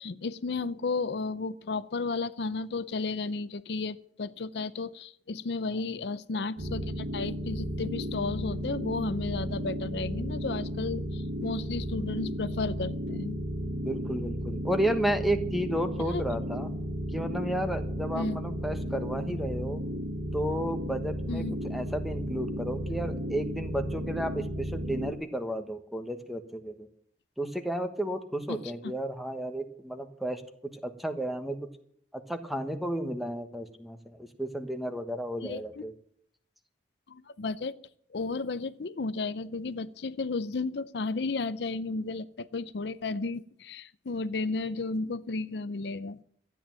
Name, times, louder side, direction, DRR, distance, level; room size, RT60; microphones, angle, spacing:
voice 1, 0.0-13.4 16.1-16.2 18.1-18.4 21.3-21.5 28.5-28.7 35.4-35.8 37.1-37.7 38.1-46.2, left 3 dB, 70° left, 14 dB, 0.6 m, -33 dB
sound 1, 6.6-25.1, equal, 85° right, 1.9 m, -34 dB
voice 2, 13.7-16.7 17.1-19.8 20.3-21.4 21.7-26.9 27.4-30.4 30.8-31.6 32.1-35.9, right 1 dB, ahead, 7 dB, 1.2 m, -32 dB
13.0 x 9.3 x 7.5 m, 0.64 s
head